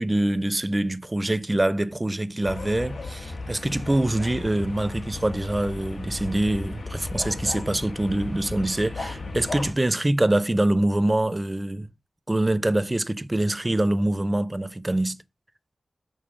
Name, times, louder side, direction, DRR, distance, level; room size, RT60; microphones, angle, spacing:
voice 1, 0.0-11.9 12.3-15.2, right 1 dB, 25° right, 0.4 m, -24 dB
sound 1, 2.4-9.7, left 3 dB, 90° left, 1.3 m, -35 dB
6.0 x 4.0 x 6.1 m
wide cardioid pair, 95°, 0 cm